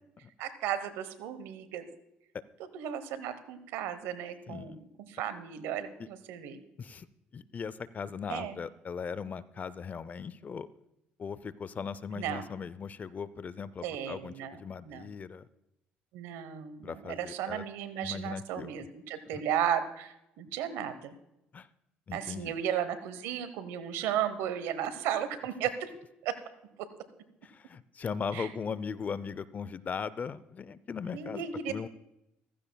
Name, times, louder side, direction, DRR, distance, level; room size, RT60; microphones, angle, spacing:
voice 1, 0.4-1.9 2.7-4.8 5.1-6.6 8.3-8.6 12.1-12.4 13.8-14.6 14.9-15.1 16.1-21.1 22.1-25.9 26.2-26.4 26.8-26.9 28.3-28.5 31.1-31.7, right 9 dB, 85° right, 12 dB, 1.0 m, -34 dB
voice 2, 4.5-4.8 6.0-6.1 6.8-7.1 7.3-10.7 11.2-15.5 16.8-17.6 18.0-18.8 19.3-19.4 21.5-21.7 22.1-22.6 27.4-31.9, left 6 dB, 40° left, 17 dB, 0.5 m, -39 dB
15.0 x 15.0 x 2.3 m, 0.87 s
supercardioid pair, 80°, 4 cm